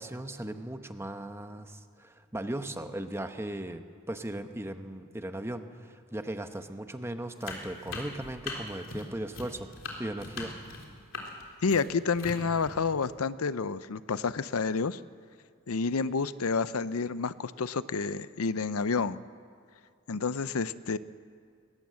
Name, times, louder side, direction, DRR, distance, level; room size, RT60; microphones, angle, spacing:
voice 1, 0.0-9.7 10.0-10.5, right 1 dB, 10° right, 8 dB, 0.9 m, -37 dB
sound 1, 7.4-13.1, left 3 dB, 65° left, 3.6 m, -40 dB
voice 2, 11.6-15.0 15.7-19.2 20.1-21.0, left 4 dB, 90° left, 15 dB, 0.6 m, -29 dB
21.0 x 19.0 x 7.6 m, 2.3 s
head